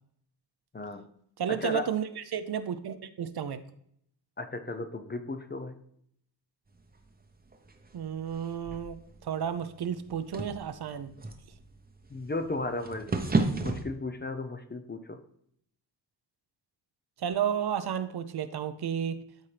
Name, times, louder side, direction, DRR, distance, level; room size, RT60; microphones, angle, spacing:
voice 1, 0.7-1.1 1.5-1.9 4.4-5.7 12.1-13.2 13.6-15.2, left 2 dB, 25° left, 8 dB, 0.6 m, -35 dB
voice 2, 1.4-3.6 7.9-11.1 17.2-19.2, right 8 dB, 60° right, 11 dB, 0.7 m, -32 dB
sound 1, 6.7-13.8, right 3 dB, 20° right, 0.8 m, -35 dB
12.5 x 4.3 x 3.3 m, 0.69 s
wide cardioid pair, 105°, 44 cm